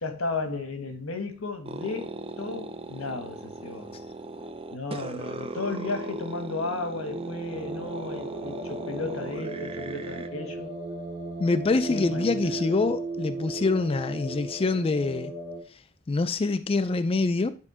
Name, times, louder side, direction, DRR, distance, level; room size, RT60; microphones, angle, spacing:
voice 1, 0.0-4.0 4.7-10.7 11.9-12.8, left 3 dB, 90° left, 1.3 m, -34 dB
sound 1, 1.7-10.3, right 2 dB, 25° right, 0.5 m, -38 dB
sound 2, 7.1-15.6, right 2 dB, 60° right, 1.9 m, -36 dB
voice 2, 11.4-15.3 16.1-17.5, left 3 dB, 25° left, 0.4 m, -25 dB
9.8 x 3.6 x 4.9 m
head